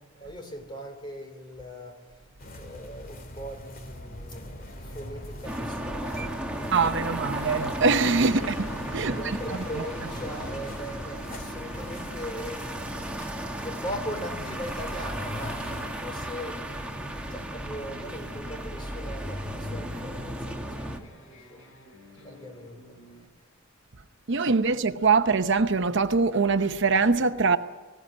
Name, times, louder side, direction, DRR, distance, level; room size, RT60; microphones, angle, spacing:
voice 1, 0.1-2.3 2.5-7.4 8.2-8.5 9.0-21.8 22.2-23.5, equal, 20° left, 3.5 m, -40 dB
sound 1, 2.4-15.9, left 1 dB, 40° left, 2.5 m, -41 dB
sound 2, 4.0-23.2, equal, 65° left, 7.1 m, -53 dB
sound 3, 5.4-21.0, right 1 dB, 5° right, 1.7 m, -35 dB
voice 2, 6.7-8.7 8.9-9.2 9.8-9.9 24.3-27.6, right 4 dB, 55° right, 0.8 m, -23 dB
19.5 x 16.5 x 9.7 m
head